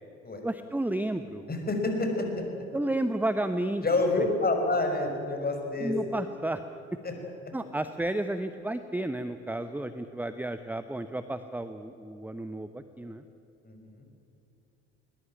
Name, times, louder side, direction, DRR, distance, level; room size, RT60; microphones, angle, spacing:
voice 1, 0.4-1.5 2.7-3.8 5.8-6.6 7.5-13.2, right 1 dB, 5° right, 10 dB, 0.9 m, -32 dB
voice 2, 1.5-2.4 3.8-6.0 7.0-7.1 13.6-14.0, left 2 dB, 25° left, 3 dB, 5.6 m, -28 dB
21.0 x 20.5 x 9.0 m, 2.9 s
figure-of-eight pair, 55°, 36 cm